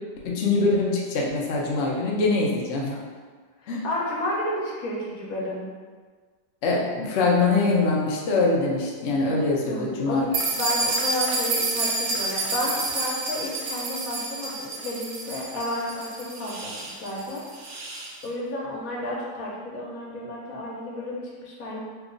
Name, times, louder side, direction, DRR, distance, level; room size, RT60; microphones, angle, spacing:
voice 1, 0.2-3.0 3.7-3.9 6.6-10.3, left 3 dB, 80° left, -3 dB, 0.6 m, -23 dB
voice 2, 3.6-5.6 9.6-10.2 10.5-17.4 18.2-21.8, left 1 dB, 65° left, -4 dB, 1.1 m, -31 dB
sound 1, 10.3-18.1, right 3 dB, 75° right, 0.6 m, -29 dB
2.8 x 2.3 x 3.7 m, 1.5 s
omnidirectional pair, 1.8 m